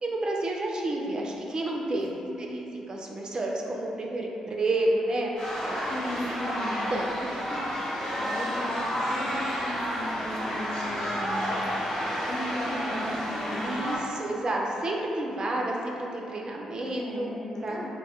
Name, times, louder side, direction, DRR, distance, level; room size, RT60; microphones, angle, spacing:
voice 1, 0.0-5.3 5.6-5.8 6.9-8.0 13.6-17.3 17.6-17.9, right 2 dB, 40° right, -1 dB, 0.4 m, -30 dB
voice 2, 2.2-2.7 5.9-6.9 8.1-11.4 11.7-13.8 16.9-17.9, left 1 dB, 25° left, -5 dB, 0.7 m, -37 dB
sound 1, 5.4-14.0, equal, 55° left, 0.9 m, -31 dB
2.1 x 2.0 x 3.5 m, 2.8 s
hypercardioid pair, 45°, 2 cm